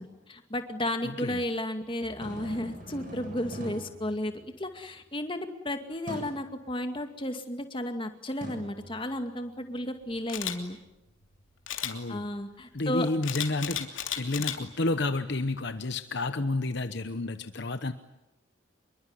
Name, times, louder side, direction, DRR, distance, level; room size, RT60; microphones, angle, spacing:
voice 1, 0.0-10.8 12.1-13.1, left 1 dB, 25° left, 6 dB, 2.2 m, -33 dB
voice 2, 1.0-1.4 11.8-12.3 12.7-17.9, left 2 dB, 55° left, 10 dB, 1.0 m, -30 dB
sound 1, 2.0-4.8 6.1-6.5 8.4-9.5, equal, 40° right, 7.9 m, -43 dB
Camera, 10.3-10.6 11.7-11.9 13.2-14.6 15.1-15.3, left 11 dB, 75° left, 2.9 m, -33 dB
26.5 x 23.0 x 9.7 m, 0.96 s
head